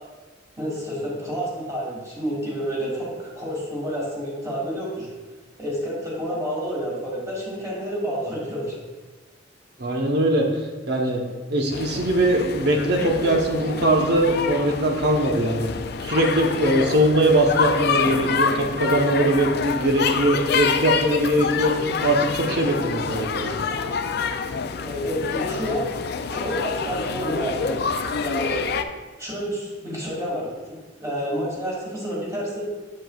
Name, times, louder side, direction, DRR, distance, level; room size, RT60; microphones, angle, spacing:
voice 1, 0.6-5.1 5.6-8.7 24.8-25.8 26.3-27.8 28.2-28.6 29.2-32.7, equal, 20° right, -5 dB, 2.3 m, -29 dB
voice 2, 9.8-10.5 10.9-11.2 11.5-15.7 16.0-21.7 22.0-23.6, right 1 dB, 60° right, 1 dB, 1.0 m, -21 dB
sound 1, 11.7-28.8, left 5 dB, 60° left, 0.4 m, -27 dB
7.6 x 7.6 x 2.4 m, 1.2 s
head